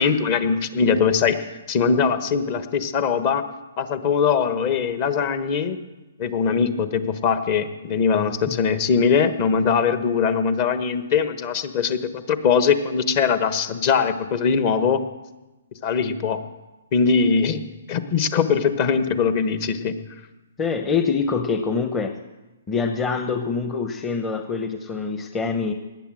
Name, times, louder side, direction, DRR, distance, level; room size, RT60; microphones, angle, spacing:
voice 1, 0.0-1.4 1.7-3.4 3.8-5.8 6.2-15.0 15.8-16.4 16.9-17.6 17.9-20.0, left 6 dB, 35° left, 10 dB, 1.2 m, -21 dB
voice 2, 20.6-22.1 22.7-25.7, left 5 dB, 15° left, 5 dB, 0.9 m, -25 dB
19.0 x 9.1 x 7.7 m, 1.1 s
hypercardioid pair, 150°, 0 cm